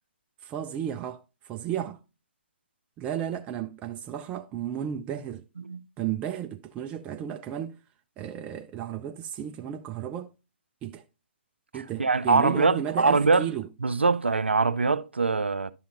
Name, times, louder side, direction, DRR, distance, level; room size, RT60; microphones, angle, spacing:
voice 1, 0.4-2.0 3.0-5.4 6.0-7.8 8.2-10.3 10.8-11.0 11.7-13.7, right 10 dB, 20° right, 0.4 m, -33 dB
voice 2, 11.7-13.5 13.8-15.7, right 4 dB, 85° right, 0.5 m, -23 dB
11.0 x 5.7 x 2.5 m
figure-of-eight pair, 125°, 6 cm